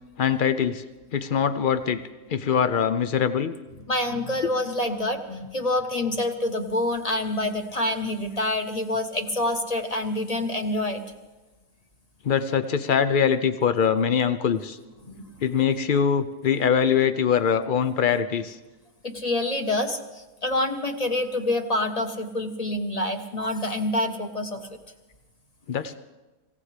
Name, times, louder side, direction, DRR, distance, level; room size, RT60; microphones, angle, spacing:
voice 1, 0.2-0.8 1.1-2.0 2.3-3.5 12.2-14.8 15.4-18.6 25.7-25.9, left 7 dB, 85° left, 12 dB, 0.4 m, -23 dB
voice 2, 3.9-11.0 15.1-15.2 19.0-24.8, left 1 dB, 25° left, 5 dB, 1.1 m, -27 dB
26.0 x 16.5 x 3.3 m, 1.1 s
omnidirectional pair, 1.7 m